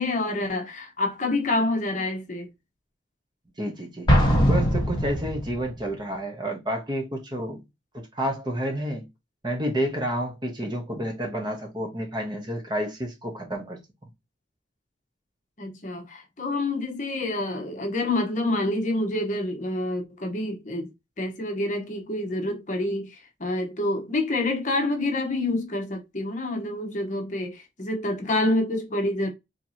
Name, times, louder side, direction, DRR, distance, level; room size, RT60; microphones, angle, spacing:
voice 1, 0.0-2.5 15.6-20.9 21.2-29.3, left 2 dB, 40° left, 1.0 m, -27 dB
voice 2, 3.6-4.1 4.5-7.6 7.9-9.1 9.4-13.8, equal, 25° right, 1.0 m, -30 dB
Explosion, 4.1-5.7, equal, 25° left, 1.3 m, -21 dB
4.5 x 3.1 x 2.7 m
head